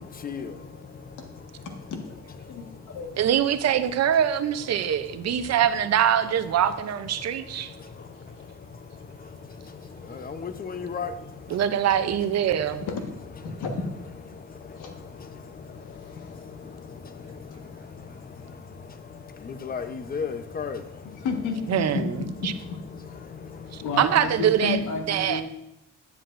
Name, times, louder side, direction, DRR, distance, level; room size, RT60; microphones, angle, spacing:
voice 1, 0.0-1.9 2.4-3.3 3.9-4.2 4.6-5.7 6.3-12.9 13.5-13.6 14.3-21.3 21.9-22.0 22.9-23.9, left 5 dB, 30° left, 9 dB, 0.7 m, -39 dB
voice 2, 1.6-2.0 2.5-3.1 12.9-13.0 13.4-14.1 14.8-14.9 15.8-16.7 21.2-22.3 23.8-25.4, left 4 dB, 85° left, 3 dB, 1.5 m, -32 dB
voice 3, 3.2-7.7 11.5-12.8 21.7-22.0 23.7-24.8 25.1-25.4, right 9 dB, 60° right, 12 dB, 0.6 m, -23 dB
9.8 x 9.5 x 2.6 m, 0.86 s
cardioid pair, 90°, 30 cm